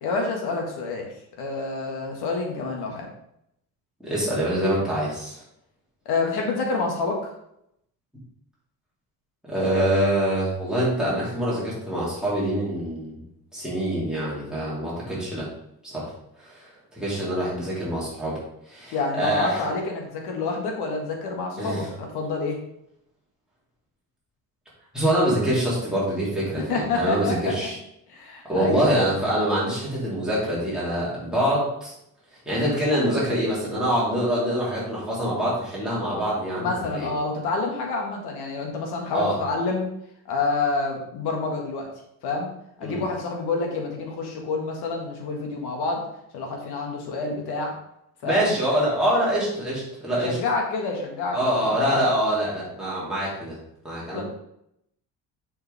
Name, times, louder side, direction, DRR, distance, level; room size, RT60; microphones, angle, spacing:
voice 1, 0.0-1.1 1.4-3.1 6.1-7.3 18.9-22.6 26.7-27.6 28.1-28.8 36.6-39.9 40.3-41.9 42.2-42.5 42.8-46.0 46.3-47.7 48.2-48.5 50.1-52.0 54.1-54.2, left 3 dB, 70° left, 1 dB, 1.9 m, -28 dB
voice 2, 4.0-5.4 9.5-13.2 13.5-15.5 15.8-16.1 16.4-18.4 18.7-19.6 21.6-21.9 24.9-27.7 28.4-31.9 32.4-37.1 39.1-39.4 42.8-43.0 48.2-50.4 51.3-53.6 53.8-54.2, right 1 dB, ahead, -8 dB, 3.0 m, -25 dB
7.1 x 5.7 x 3.5 m, 0.77 s
cardioid pair, 160°, 40 cm